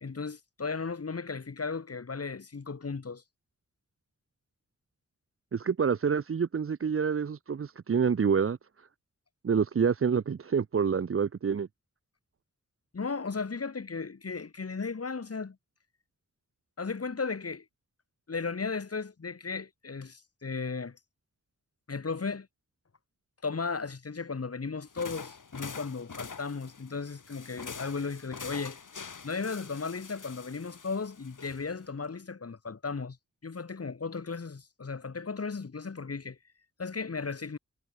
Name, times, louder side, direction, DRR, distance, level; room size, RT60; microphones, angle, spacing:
voice 1, 0.0-3.2 12.9-15.6 16.8-17.7 18.3-21.0 21.9-22.5 23.4-28.8 29.2-33.2 33.4-36.4 36.8-37.6, left 4 dB, 50° left, 1.8 m, -35 dB
voice 2, 5.5-8.6 9.4-11.7, right 6 dB, 45° right, 0.6 m, -27 dB
sound 1, 24.9-31.9, left 5 dB, 85° left, 5.9 m, -45 dB
wide cardioid pair, 75°, 31 cm